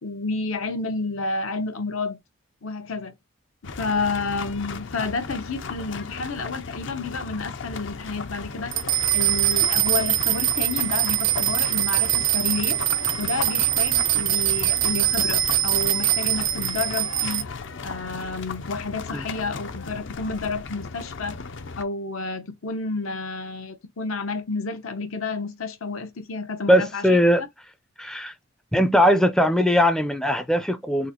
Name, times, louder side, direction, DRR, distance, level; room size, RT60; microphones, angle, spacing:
voice 1, 0.0-2.2 2.6-3.1 3.8-8.7 9.1-12.8 13.2-17.5 17.8-21.4 21.8-27.2, left 3 dB, 85° left, 0.9 m, -30 dB
sound 1, 3.6-21.8, left 4 dB, 60° left, 0.6 m, -36 dB
sound 2, 8.7-17.4, right 14 dB, 65° right, 0.6 m, -23 dB
voice 2, 26.7-27.4 28.0-28.3 28.7-31.1, equal, 5° left, 0.4 m, -20 dB
4.1 x 2.4 x 4.3 m
head